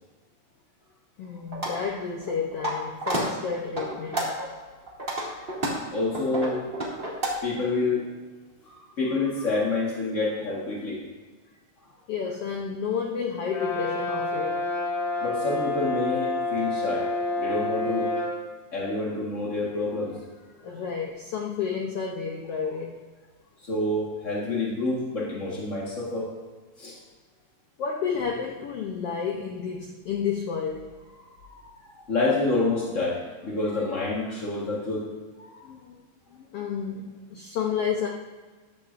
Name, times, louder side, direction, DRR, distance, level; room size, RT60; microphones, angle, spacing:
voice 1, 1.2-4.3 12.1-14.7 20.6-22.9 27.8-30.9 35.6-36.0 36.3-38.1, left 6 dB, 90° left, 0 dB, 1.3 m, -31 dB
sound 1, 1.5-1.8 2.2-2.7 3.0-3.2 3.8-4.5 4.9-7.3, right 1 dB, 20° right, 1.8 m, -29 dB
voice 2, 5.9-6.7 6.9-7.1 7.4-8.1 8.6-11.0 15.2-18.2 18.7-20.2 20.6-20.8 22.6-22.7 23.6-26.3 26.8-27.0 31.4-31.7 32.0-35.1 35.4-35.7, left 2 dB, 55° left, -4 dB, 0.8 m, -28 dB
Brass instrument, 13.5-18.4, left 2 dB, 35° left, 3.1 m, -28 dB
14.5 x 11.5 x 2.6 m, 1.4 s
omnidirectional pair, 4.0 m